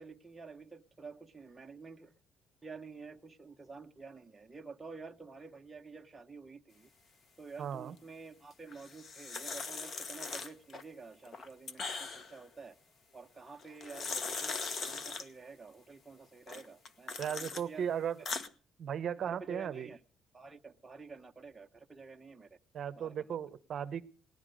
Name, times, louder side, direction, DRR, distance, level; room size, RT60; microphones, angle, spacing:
voice 1, 0.0-2.1 2.6-6.9 7.4-12.7 13.1-14.6 14.8-17.9 18.2-18.3 19.2-20.0 20.3-22.6 23.0-23.4, right 4 dB, 10° right, 3 dB, 0.9 m, -50 dB
voice 2, 7.6-7.9 17.2-18.2 18.8-19.9 22.7-24.0, right 8 dB, 45° right, 13 dB, 0.9 m, -36 dB
sound 1, 8.7-10.8 11.2-12.4 13.6-15.3 16.5-17.6 18.0-18.5, left 4 dB, 40° left, 1.2 m, -40 dB
18.5 x 12.0 x 5.2 m, 0.38 s
cardioid pair, 165°, 0 cm